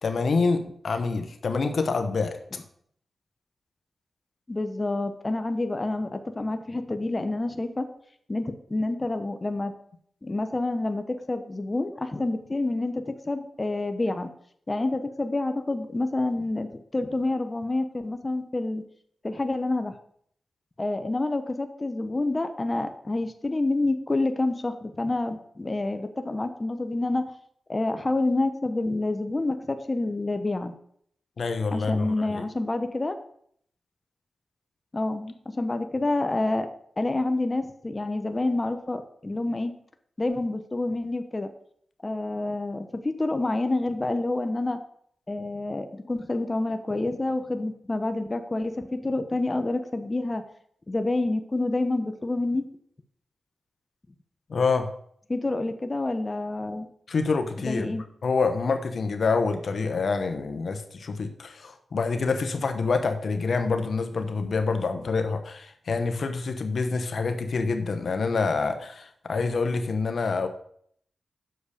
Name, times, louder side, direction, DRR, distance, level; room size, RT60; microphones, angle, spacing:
voice 1, 0.0-2.6 31.4-32.4 54.5-54.9 57.1-58.0 58.2-70.5, left 4 dB, 65° left, 7 dB, 1.0 m, -27 dB
voice 2, 4.5-7.9 8.3-9.7 10.2-14.3 14.7-18.8 19.2-19.9 20.8-27.3 27.7-30.7 31.7-33.2 34.9-36.7 37.0-39.7 40.2-41.5 42.0-44.8 45.3-50.4 50.9-52.7 55.3-56.9 57.6-58.0, left 2 dB, 30° left, 8 dB, 0.9 m, -28 dB
8.0 x 6.7 x 4.9 m, 0.65 s
cardioid pair, 50°, 0 cm